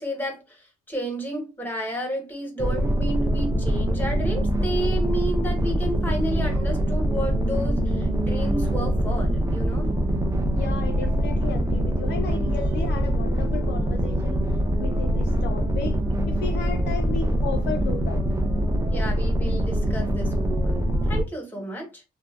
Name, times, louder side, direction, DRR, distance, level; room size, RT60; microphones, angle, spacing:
voice 1, 0.0-9.9 18.9-20.8 21.1-22.0, right 1 dB, 10° left, 1.1 m, -31 dB
sound 1, 2.6-21.2, right 1 dB, 15° right, 0.6 m, -24 dB
voice 2, 10.5-14.5 14.8-16.0 16.3-18.2 21.6-21.7, left 7 dB, 60° left, 0.4 m, -34 dB
2.6 x 2.2 x 2.4 m
cardioid pair, 90°, 20 cm